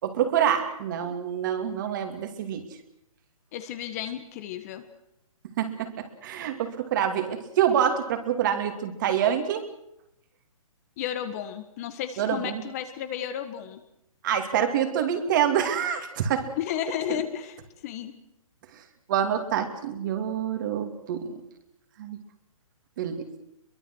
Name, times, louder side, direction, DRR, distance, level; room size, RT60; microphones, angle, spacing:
voice 1, 0.0-2.7 5.6-9.6 12.2-12.6 14.2-16.5 17.1-17.2 19.1-21.4 22.0-22.2 23.0-23.3, right 9 dB, 35° right, 7 dB, 2.6 m, -26 dB
voice 2, 3.5-4.8 11.0-13.8 16.6-18.1, left 10 dB, 25° left, 10 dB, 1.5 m, -33 dB
23.5 x 23.0 x 6.3 m, 0.80 s
hypercardioid pair, 160°, 18 cm